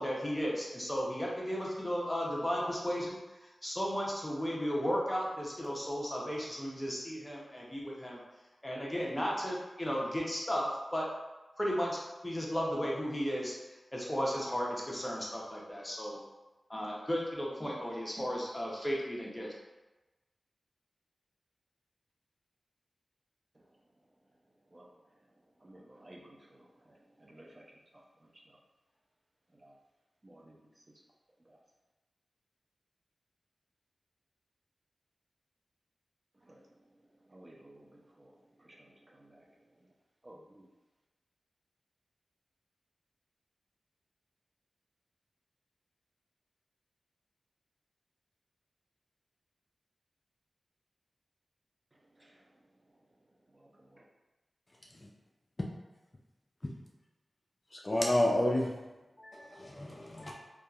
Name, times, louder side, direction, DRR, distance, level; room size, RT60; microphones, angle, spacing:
voice 1, 0.0-3.2 3.6-8.2 8.6-11.0 11.6-13.5 13.9-16.2 16.7-19.5, equal, 20° left, -4 dB, 0.7 m, -34 dB
voice 2, 25.6-27.6 29.6-29.7 30.2-30.5 36.5-36.6 37.3-38.3 38.6-38.8 39.1-39.4 40.2-40.6 52.2-52.3 53.6-54.0, right 1 dB, 40° right, -3 dB, 0.5 m, -55 dB
voice 3, 57.8-58.7 59.2-60.3, left 1 dB, 35° left, -2 dB, 0.4 m, -30 dB
2.7 x 2.3 x 2.4 m, 1.1 s
cardioid pair, 40°, 0 cm